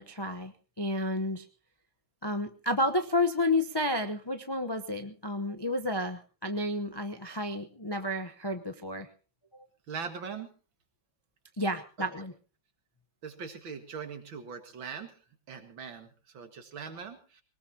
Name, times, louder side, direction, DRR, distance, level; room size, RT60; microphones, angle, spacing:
voice 1, 0.0-1.4 2.2-9.1 11.6-12.3, left 1 dB, 30° left, 6 dB, 0.4 m, -31 dB
voice 2, 9.9-10.5 12.0-12.3 13.2-15.2 15.5-17.4, right 6 dB, 75° right, 6 dB, 2.6 m, -41 dB
21.5 x 19.5 x 2.8 m, 0.36 s
omnidirectional pair, 2.1 m